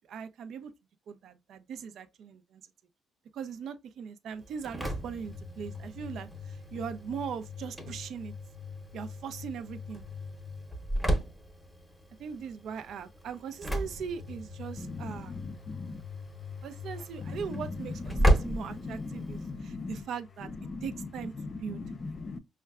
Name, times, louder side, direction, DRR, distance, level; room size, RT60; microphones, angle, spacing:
voice 1, 0.1-0.7 1.1-2.6 3.3-8.3 8.9-10.0 12.2-15.4 16.6-20.5 20.8-21.8, right 7 dB, 65° right, 0.5 m, -40 dB
Engine / Slam, 4.4-19.5, equal, ahead, 0.8 m, -34 dB
voice 2, 14.8-16.0 17.2-17.7 18.1-20.0 20.6-21.1 21.4-22.4, left 3 dB, 35° left, 0.4 m, -39 dB
5.5 x 2.2 x 2.3 m
cardioid pair, 115°, 0 cm